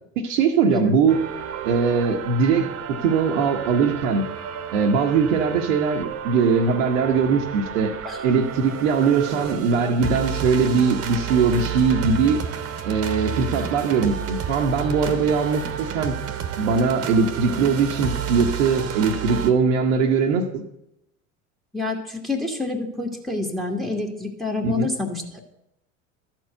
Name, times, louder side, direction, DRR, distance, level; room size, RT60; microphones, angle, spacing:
voice 1, 0.2-1.2 1.6-4.2 4.7-7.9 8.2-12.4 12.8-16.2 16.6-20.6 24.6-24.9, right 5 dB, 65° right, 0 dB, 1.1 m, -21 dB
sound 1, 1.1-19.5, right 8 dB, 35° right, 1.2 m, -31 dB
voice 2, 21.7-25.4, left 3 dB, ahead, 3 dB, 1.5 m, -27 dB
12.5 x 4.6 x 7.8 m, 0.85 s
figure-of-eight pair, 75°, 40 cm